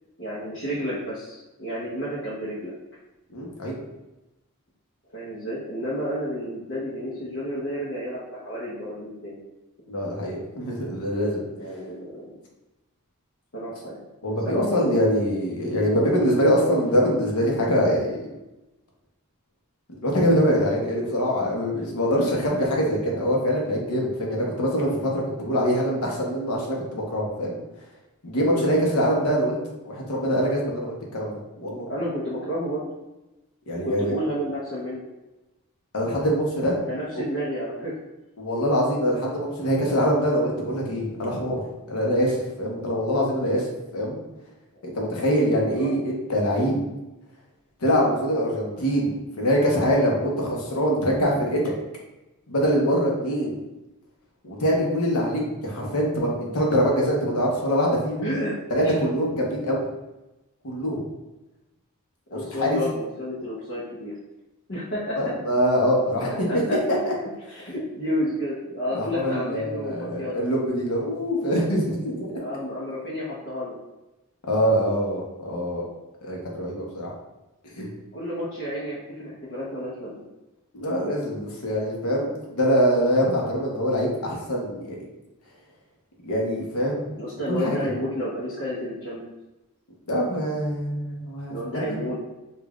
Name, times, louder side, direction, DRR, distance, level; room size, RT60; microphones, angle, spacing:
voice 1, 0.2-2.7 5.1-9.4 11.6-12.3 13.5-14.0 14.3-15.0 28.5-28.7 31.9-32.8 33.8-35.0 36.9-38.0 45.2-46.0 58.2-58.6 58.8-59.0 62.3-64.1 64.7-65.3 66.5-66.8 67.5-70.4 72.3-73.7 78.1-80.2 87.2-89.2 91.5-92.1, equal, 55° left, -9 dB, 0.9 m, -31 dB
voice 2, 3.3-3.8 9.9-11.4 14.2-18.3 20.0-27.6 28.2-29.6 29.8-31.8 33.7-34.1 35.9-36.8 38.4-41.6 41.9-44.2 44.8-46.8 47.8-51.6 52.5-53.6 54.4-58.3 58.7-59.8 60.6-61.0 62.6-62.8 65.2-67.1 68.9-72.3 74.4-75.8 76.2-77.1 77.8-77.9 80.7-85.0 86.2-87.1 87.5-87.8 90.1-91.8, equal, 90° left, -1 dB, 1.0 m, -24 dB
5.1 x 2.5 x 2.4 m, 1.0 s
head